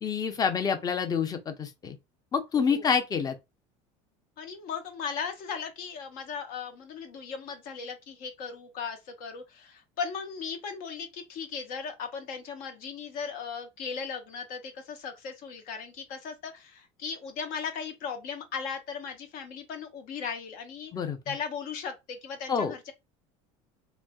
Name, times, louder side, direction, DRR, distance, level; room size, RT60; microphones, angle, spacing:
voice 1, 0.0-2.0 2.3-3.4 20.9-21.2 22.5-22.7, left 6 dB, 25° left, 0.6 m, -27 dB
voice 2, 2.5-2.9 4.4-20.9 21.3-22.9, left 6 dB, 65° left, 0.9 m, -37 dB
3.2 x 2.6 x 2.3 m
supercardioid pair, 120°, 15 cm